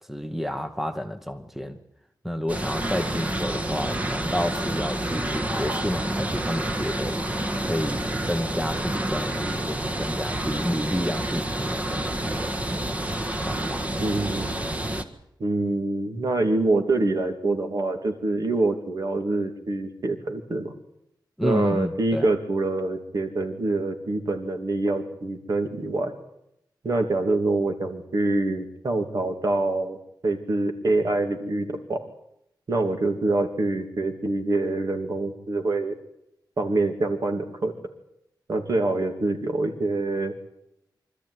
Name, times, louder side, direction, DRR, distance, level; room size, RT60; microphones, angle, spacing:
voice 1, 0.1-1.8 2.2-7.2 7.6-13.0 13.4-14.0 21.4-22.3, equal, 5° right, 1.1 m, -30 dB
sound 1, 2.5-15.0, right 1 dB, 20° right, 1.5 m, -28 dB
voice 2, 14.0-14.5 15.4-20.7 21.4-26.1 26.8-30.0 30.2-32.0 32.7-36.0 36.6-37.7 38.5-40.3, right 2 dB, 50° right, 2.7 m, -25 dB
24.5 x 13.5 x 9.8 m
wide cardioid pair, 150°, 8 cm